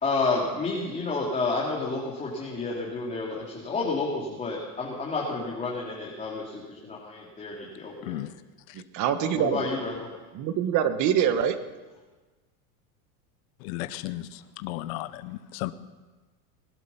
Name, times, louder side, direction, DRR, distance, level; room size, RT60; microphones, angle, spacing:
voice 1, 0.0-8.2 9.2-10.1, left 3 dB, 15° left, -4 dB, 3.0 m, -30 dB
voice 2, 8.0-8.3 13.6-15.7, left 16 dB, 65° left, 13 dB, 1.0 m, -34 dB
voice 3, 8.7-9.6 10.3-11.6, right 9 dB, 40° right, 10 dB, 1.3 m, -25 dB
20.5 x 11.5 x 5.8 m, 1.3 s
supercardioid pair, 140°, 44 cm